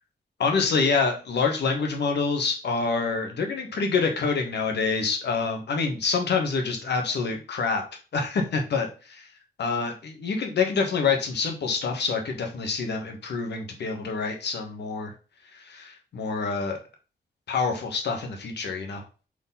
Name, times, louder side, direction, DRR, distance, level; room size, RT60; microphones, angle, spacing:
voice 1, 0.4-7.8 8.1-9.3 9.6-15.1 15.5-16.8 17.5-19.0, left 4 dB, 85° left, 3 dB, 1.5 m, -26 dB
5.1 x 4.2 x 5.5 m, 0.34 s
wide cardioid pair, 150°, 17 cm